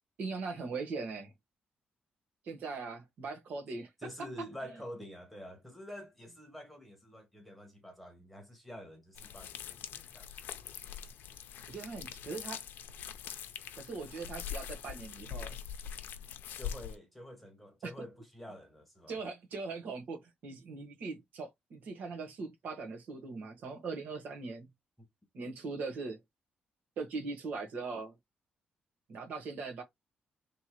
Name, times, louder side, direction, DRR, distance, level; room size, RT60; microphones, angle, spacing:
voice 1, 0.2-1.3 2.4-3.9 11.7-12.6 13.8-15.6 17.8-17.9 19.1-24.7 25.3-26.2 27.0-28.1 29.1-29.8, right 4 dB, 60° right, 1.4 m, -40 dB
voice 2, 4.0-10.3 16.5-19.2 25.0-25.1, equal, 5° left, 1.2 m, -48 dB
sound 1, 9.2-17.0, left 9 dB, 80° left, 0.7 m, -43 dB
3.5 x 2.9 x 4.5 m
cardioid pair, 170°, 3 cm